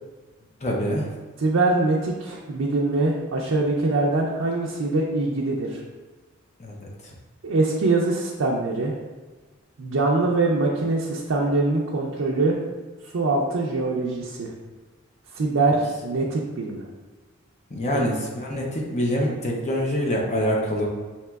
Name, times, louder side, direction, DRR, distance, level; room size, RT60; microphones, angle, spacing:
voice 1, 0.6-1.1 6.6-6.9 17.7-20.9, equal, 35° left, -1 dB, 0.5 m, -25 dB
voice 2, 1.4-5.8 7.4-8.9 9.8-12.6 13.1-14.5 15.3-16.8 17.9-18.1, right 2 dB, 75° right, -3 dB, 0.5 m, -23 dB
5.7 x 2.9 x 2.3 m, 1.3 s
head